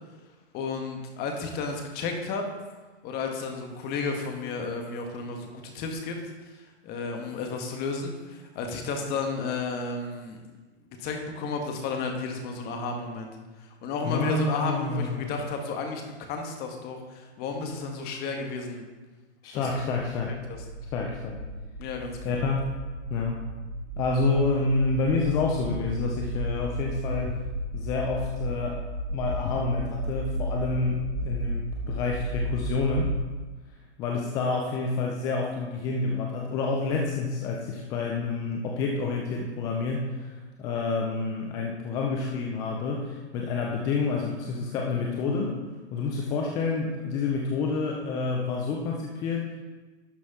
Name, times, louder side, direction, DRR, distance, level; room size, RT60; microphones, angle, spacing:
voice 1, 0.5-2.5 3.0-6.2 6.8-10.4 11.0-13.3 13.6-16.0 16.3-18.8 19.5-19.7 20.5-20.6 21.8-22.4, left 4 dB, 30° left, 3 dB, 1.4 m, -32 dB
voice 2, 14.1-15.3 19.4-20.3 20.9-21.4 22.2-22.6 23.1-23.4 24.0-27.4 27.7-28.8 29.1-33.1 34.0-45.6 45.9-49.5, left 3 dB, 10° left, 0 dB, 0.3 m, -28 dB
sound 1, 20.2-33.2, equal, 50° right, 2.2 m, -34 dB
11.5 x 6.1 x 3.6 m, 1.3 s
hypercardioid pair, 125°, 34 cm